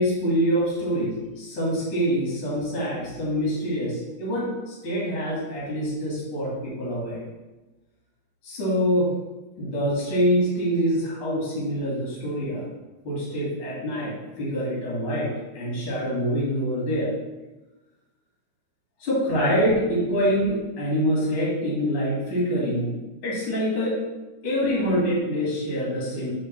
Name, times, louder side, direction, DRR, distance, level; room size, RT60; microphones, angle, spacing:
voice 1, 0.0-7.2 8.4-9.1 9.6-12.7 13.0-17.1 19.0-22.9 23.2-24.0 24.4-26.3, equal, 50° left, -6 dB, 2.6 m, -25 dB
5.0 x 4.4 x 5.8 m, 1.1 s
omnidirectional pair, 3.3 m